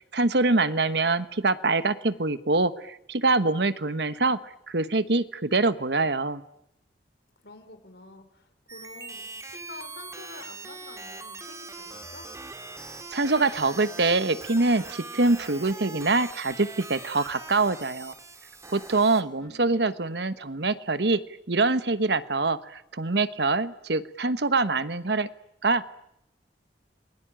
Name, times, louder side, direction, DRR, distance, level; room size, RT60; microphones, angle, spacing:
voice 1, 0.0-4.4 4.7-6.4 13.1-18.1 18.7-21.2 21.5-25.3 25.6-25.9, right 3 dB, 65° right, 13 dB, 1.2 m, -24 dB
voice 2, 7.4-12.2 19.4-20.0, left 3 dB, 65° left, 7 dB, 4.7 m, -48 dB
sound 1, 8.7-19.2, right 3 dB, 15° right, 2.5 m, -42 dB
29.5 x 22.0 x 8.8 m, 0.79 s
head